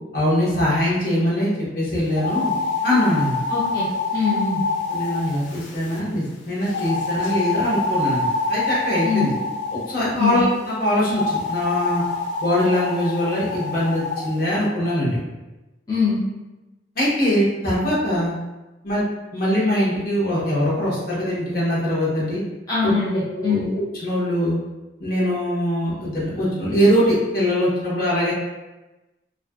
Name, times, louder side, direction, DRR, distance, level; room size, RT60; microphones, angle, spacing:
voice 1, 0.1-2.5 2.8-3.4 4.9-9.3 9.7-12.0 12.4-15.2 16.9-18.3 18.8-19.0 19.3-22.4 22.8-22.9 23.4-24.6 25.0-28.3, equal, 50° left, -7 dB, 0.9 m, -22 dB
sound 1, 2.1-6.0 6.7-10.0 11.0-14.3, left 3 dB, 85° left, 0.4 m, -26 dB
voice 2, 3.5-3.9 4.1-4.6 9.0-9.3 10.2-10.4 15.9-16.2 22.7-23.7, left 5 dB, 20° left, -9 dB, 0.5 m, -22 dB
2.6 x 2.4 x 2.3 m, 1.1 s
head